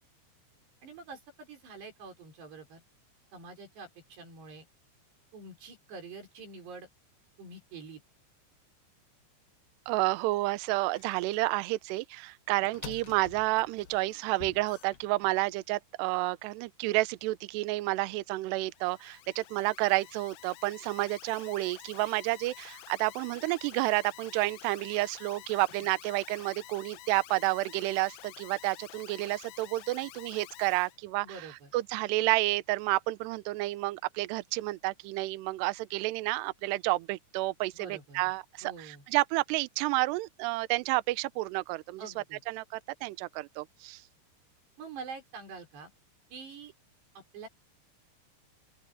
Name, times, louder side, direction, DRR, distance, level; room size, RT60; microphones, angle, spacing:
voice 1, 0.8-2.8 3.3-4.7 5.3-6.9 7.4-8.0 31.2-31.7 37.7-38.3 38.6-39.0 42.0-42.4 44.8-45.9 46.3-46.7 47.2-47.5, right 4 dB, 60° right, 7.5 m, -46 dB
voice 2, 9.9-31.4 31.7-42.6 43.0-44.0, right 20 dB, 85° right, 2.5 m, -30 dB
sound 1, 10.9-11.4 12.5-15.5, left 10 dB, 65° left, 2.4 m, -48 dB
Alarm, 18.6-31.0, left 18 dB, 85° left, 3.2 m, -50 dB
open air
omnidirectional pair, 5.5 m